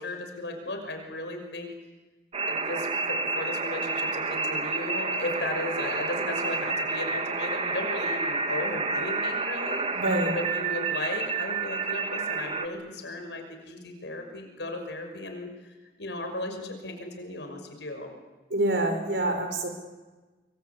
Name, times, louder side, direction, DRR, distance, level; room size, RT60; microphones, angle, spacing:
voice 1, 0.0-1.7 2.5-9.9 10.3-15.5 16.0-18.1, left 2 dB, 80° left, 5 dB, 6.0 m, -35 dB
sound 1, 2.3-12.7, right 4 dB, 35° right, 1.8 m, -29 dB
voice 2, 9.9-10.4 18.5-19.7, right 1 dB, 80° right, 5 dB, 5.9 m, -26 dB
25.0 x 24.0 x 8.5 m, 1.2 s
head